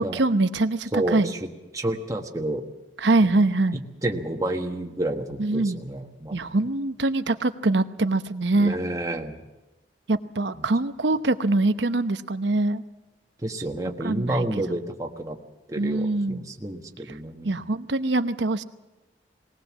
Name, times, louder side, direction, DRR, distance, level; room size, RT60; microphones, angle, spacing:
voice 1, 0.0-1.3 3.0-3.8 5.4-5.8 6.3-8.8 10.1-12.8 14.0-14.4 14.7-14.8 15.8-16.4 17.4-18.6, right 2 dB, 80° right, 11 dB, 0.9 m, -23 dB
voice 2, 0.9-1.4 1.7-2.6 3.7-6.6 8.5-9.3 13.4-15.4 15.7-17.6, right 1 dB, 20° right, 2 dB, 1.4 m, -30 dB
20.0 x 19.0 x 7.4 m, 1.1 s
head